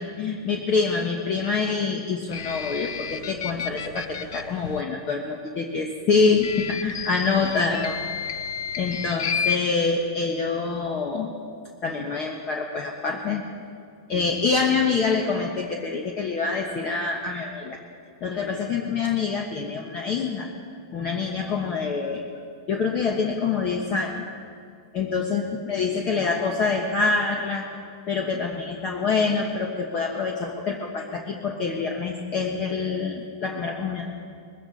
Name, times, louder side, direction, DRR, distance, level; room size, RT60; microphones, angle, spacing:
voice 1, 0.0-8.0 8.8-11.3 11.8-13.4 14.1-17.8 18.2-20.5 20.9-22.2 22.7-24.2 24.9-27.7 28.1-34.1, left 4 dB, 30° left, 2 dB, 1.2 m, -26 dB
sound 1, 2.3-4.8 6.3-9.6, left 7 dB, 70° left, 0.7 m, -31 dB
20.5 x 15.0 x 4.2 m, 2.3 s
supercardioid pair, 155°, 2 cm